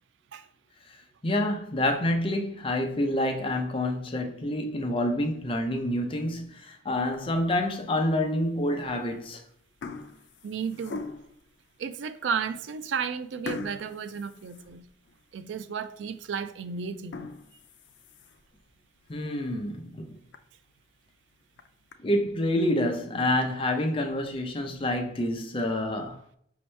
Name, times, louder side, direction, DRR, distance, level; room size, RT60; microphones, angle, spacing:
voice 1, 1.2-9.4 19.1-20.2 22.0-26.4, left 1 dB, 30° left, 0.6 m, -28 dB
sound 1, 7.0-7.5 8.1-8.2 9.1-9.3 9.6-11.5 12.1-12.2 12.5-12.6 13.4-15.2 15.6-15.7 16.2-16.3 16.9-18.5 19.0-19.1 19.5-19.6 19.9-20.0 20.3-20.4 21.3-21.9, left 4 dB, 75° left, 0.4 m, -41 dB
voice 2, 10.4-11.0 11.8-14.8 15.3-17.3, right 6 dB, 85° right, 0.3 m, -33 dB
5.4 x 2.8 x 3.2 m
head